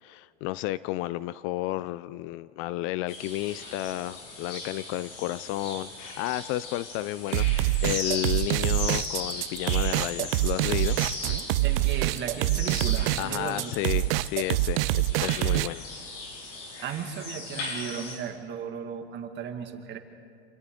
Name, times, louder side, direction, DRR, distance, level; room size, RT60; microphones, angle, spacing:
voice 1, 0.0-11.0 13.2-15.8, left 16 dB, 45° left, 18 dB, 0.4 m, -32 dB
sound 1, 3.1-18.2, left 3 dB, 60° left, 6.9 m, -38 dB
sound 2, 7.3-15.7, right 18 dB, 65° right, 0.6 m, -25 dB
voice 2, 11.6-13.7 16.8-20.0, right 8 dB, 35° right, 5 dB, 2.0 m, -35 dB
28.5 x 26.5 x 3.8 m, 2.3 s
hypercardioid pair, 115°, 30 cm